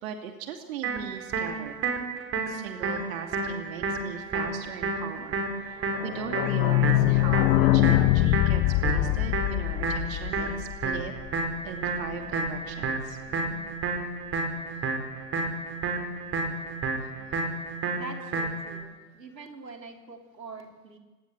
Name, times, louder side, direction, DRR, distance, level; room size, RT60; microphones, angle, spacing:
voice 1, 0.0-1.7 2.5-11.1 11.6-13.8 16.1-16.4 17.2-17.8, right 8 dB, 55° right, 4 dB, 2.6 m, -40 dB
sound 1, 0.8-18.8, right 3 dB, 25° right, 5.0 m, -31 dB
sound 2, 6.0-11.5 11.8-11.9 12.1-12.2 12.5-12.6, left 17 dB, 35° left, 1.2 m, -23 dB
voice 2, 17.9-21.0, right 4 dB, 85° right, 3 dB, 3.6 m, -44 dB
29.5 x 18.0 x 8.1 m, 1.2 s
figure-of-eight pair, 100°, 49 cm